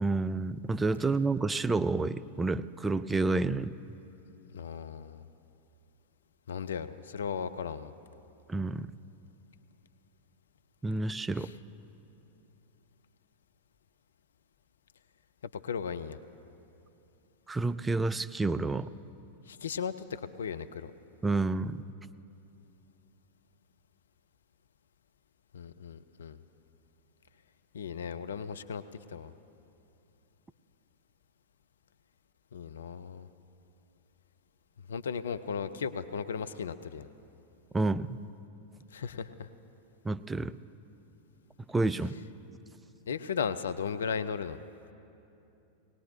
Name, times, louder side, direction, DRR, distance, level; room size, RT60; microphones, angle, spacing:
voice 1, 0.0-3.8 8.5-8.9 10.8-11.5 17.5-18.9 21.2-21.8 37.7-38.2 40.0-40.5 41.7-42.1, right 3 dB, 10° right, 13 dB, 0.3 m, -29 dB
voice 2, 4.5-5.2 6.5-7.9 11.4-11.5 15.5-16.2 19.5-20.9 25.5-26.4 27.7-28.8 29.1-29.3 32.5-33.3 34.9-37.1 38.9-39.5 43.1-44.6, left 6 dB, 65° left, 12 dB, 0.4 m, -36 dB
19.5 x 18.5 x 2.8 m, 2.8 s
figure-of-eight pair, 90°, 0 cm